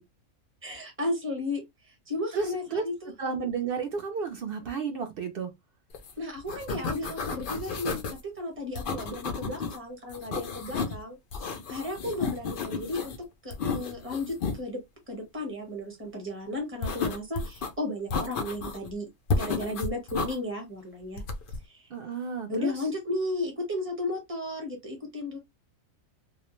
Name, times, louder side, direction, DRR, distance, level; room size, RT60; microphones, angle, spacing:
voice 1, 0.6-3.1 6.2-11.2 11.7-14.8 15.1-19.1 19.3-21.2 21.6-21.9 22.5-25.4, left 1 dB, 10° right, 0.8 m, -34 dB
voice 2, 2.3-2.8 3.2-5.5 21.9-22.7, right 5 dB, 65° right, 0.5 m, -32 dB
sound 1, 5.9-6.1 6.4-8.2 8.8-9.8 10.1-11.0 11.3-13.2 13.5-14.6 16.8-17.7 18.1-18.9 19.3-20.3 21.2-21.6, left 4 dB, 70° left, 0.5 m, -32 dB
2.3 x 2.1 x 3.0 m
omnidirectional pair, 1.5 m